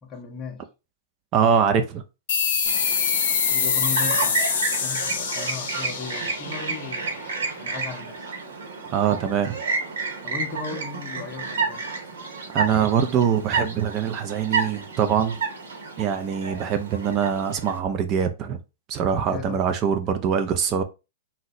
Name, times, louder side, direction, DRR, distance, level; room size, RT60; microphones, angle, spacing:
voice 1, 0.0-0.7 3.1-4.4 4.8-8.3 10.2-11.9 19.2-19.6, left 5 dB, 20° left, 0.6 m, -37 dB
voice 2, 1.3-2.0 8.9-9.6 12.5-15.4 16.0-18.6 18.9-20.8, right 7 dB, 30° right, 0.4 m, -23 dB
sound 1, 2.3-7.4, left 6 dB, 55° left, 0.8 m, -25 dB
Chirp tweet, 2.7-17.8, right 4 dB, 80° right, 1.1 m, -31 dB
2.7 x 2.0 x 4.0 m
hypercardioid pair, 135°, 0 cm